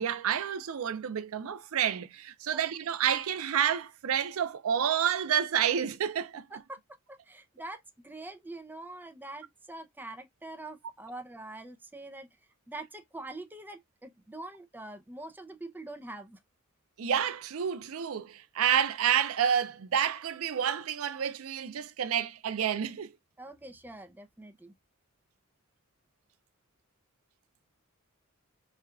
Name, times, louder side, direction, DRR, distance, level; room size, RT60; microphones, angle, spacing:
voice 1, 0.0-6.6 17.0-23.1, right 8 dB, 75° right, 0.5 m, -29 dB
voice 2, 7.1-12.3 12.7-16.4 23.4-24.7, right 2 dB, 10° right, 0.5 m, -44 dB
4.3 x 2.3 x 2.3 m
head